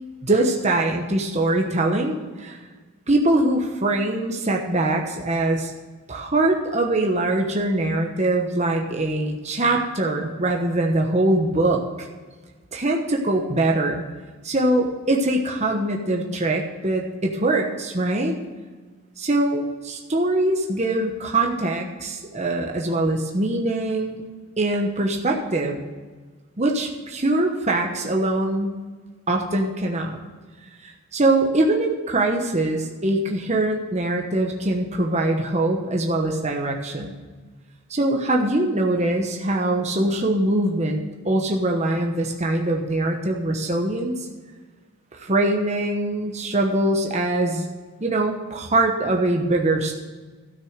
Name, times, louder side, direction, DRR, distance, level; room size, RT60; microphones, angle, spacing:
voice 1, 0.2-2.6 3.1-5.7 6.1-12.1 12.7-14.0 14.4-18.4 19.2-24.2 24.6-25.9 26.6-28.8 29.3-30.2 30.8-37.2 37.9-44.2 45.1-47.7 48.0-50.0, right 2 dB, 30° right, 1 dB, 1.1 m, -23 dB
13.0 x 6.4 x 6.5 m, 1.4 s
head